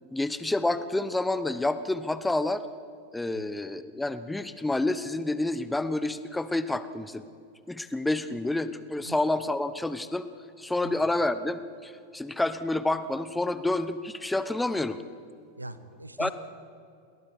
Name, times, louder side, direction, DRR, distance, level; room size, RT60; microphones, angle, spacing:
voice 1, 0.1-2.6 3.1-7.2 7.7-10.3 10.6-15.0 16.2-16.3, left 2 dB, 5° left, 13 dB, 0.9 m, -29 dB
voice 2, 15.6-16.3, right 2 dB, 85° right, 13 dB, 1.1 m, -41 dB
29.0 x 21.0 x 4.8 m, 2.5 s
figure-of-eight pair, 90°, 0 cm